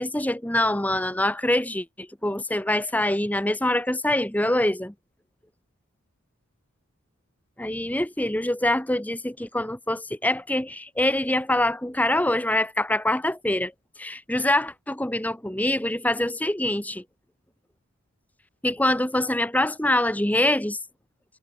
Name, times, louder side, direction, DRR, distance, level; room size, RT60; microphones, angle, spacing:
voice 1, 0.0-4.9 7.6-13.7 14.0-17.0 18.6-20.8, left 1 dB, 5° left, 1.0 m, -24 dB
head